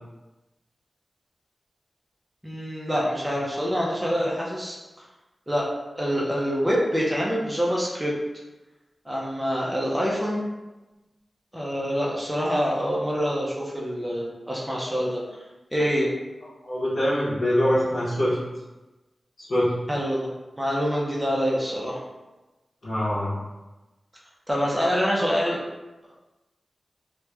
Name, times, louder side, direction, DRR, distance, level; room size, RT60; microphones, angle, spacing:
voice 1, 2.4-4.8 5.5-5.7 5.9-8.1 9.1-10.4 11.5-15.2 15.7-16.1 19.9-20.3 20.6-22.0 24.5-25.6, equal, 10° right, -4 dB, 0.4 m, -25 dB
voice 2, 16.6-18.4 19.4-19.7 22.8-23.3, equal, 75° left, -12 dB, 0.8 m, -23 dB
2.9 x 2.1 x 2.2 m, 1.1 s
wide cardioid pair, 100°, 0 cm